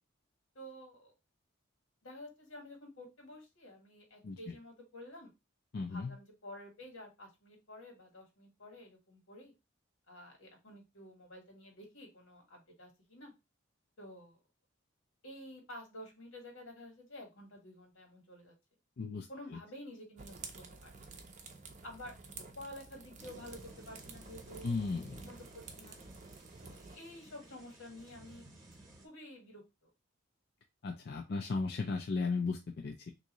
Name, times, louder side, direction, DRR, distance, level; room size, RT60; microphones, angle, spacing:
voice 1, 0.5-1.1 2.0-5.3 5.9-9.5 10.1-13.3 14.0-14.4 15.2-18.5 19.3-21.2 21.8-22.2 22.6-24.7 25.2-25.9 26.6-28.5 29.0-29.9, left 1 dB, 80° left, 2 dB, 1.6 m, -51 dB
voice 2, 4.2-4.5 5.7-6.2 19.0-19.3 24.6-25.2 30.8-33.1, left 4 dB, 50° left, 2 dB, 0.4 m, -35 dB
sound 1, 20.2-27.0, right 4 dB, 35° right, 0.5 m, -51 dB
sound 2, 23.2-29.1, right 1 dB, 15° right, 0.9 m, -56 dB
3.5 x 2.7 x 2.9 m, 0.24 s
head